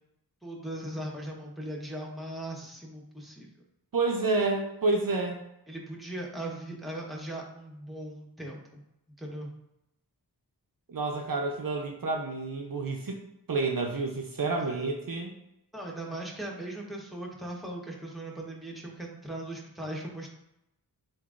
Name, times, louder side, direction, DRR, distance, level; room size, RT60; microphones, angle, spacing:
voice 1, 0.4-3.5 5.7-8.8 9.2-9.5 14.7-14.8 15.7-20.3, right 1 dB, ahead, -2 dB, 1.0 m, -39 dB
voice 2, 3.9-5.4 10.9-15.4, right 3 dB, 60° right, 2 dB, 0.6 m, -29 dB
7.5 x 2.6 x 2.4 m, 0.85 s
wide cardioid pair, 75°, 39 cm